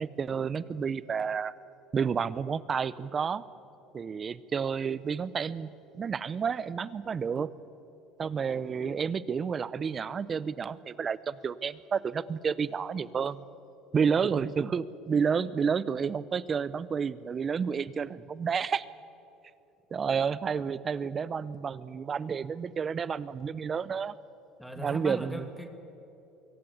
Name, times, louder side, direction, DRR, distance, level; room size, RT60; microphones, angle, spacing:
voice 1, 0.0-1.5 1.9-3.4 3.9-5.7 5.9-7.5 8.2-13.4 13.9-18.8 19.9-24.2 24.8-25.5, right 6 dB, 35° right, 18 dB, 0.7 m, -30 dB
voice 2, 24.6-25.7, equal, ahead, 6 dB, 2.3 m, -39 dB
23.5 x 16.0 x 8.5 m, 2.8 s
supercardioid pair, 90°, 0 cm